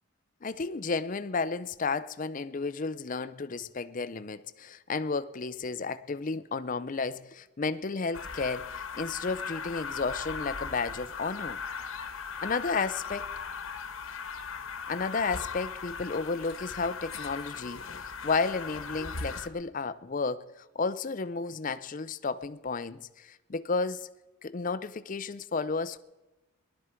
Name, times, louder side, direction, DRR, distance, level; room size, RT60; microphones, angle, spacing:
voice 1, 0.4-11.6 12.4-13.3 14.9-24.1 24.4-26.0, left 4 dB, 35° left, 0.5 m, -32 dB
sound 1, 8.1-19.5, left 5 dB, 70° left, 1.2 m, -38 dB
20.5 x 11.5 x 4.4 m
head